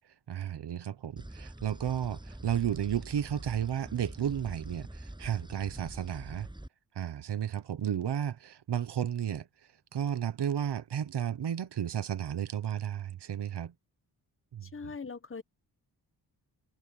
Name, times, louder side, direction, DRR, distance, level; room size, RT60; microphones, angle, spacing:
voice 1, 0.3-6.5 6.9-9.5 9.9-13.7 14.5-14.9, right 9 dB, 80° right, 1.1 m, -33 dB
sound 1, 1.2-6.7, right 1 dB, 10° right, 7.8 m, -45 dB
voice 2, 14.6-15.4, left 5 dB, 30° left, 1.2 m, -41 dB
wide cardioid pair, 100°, 40 cm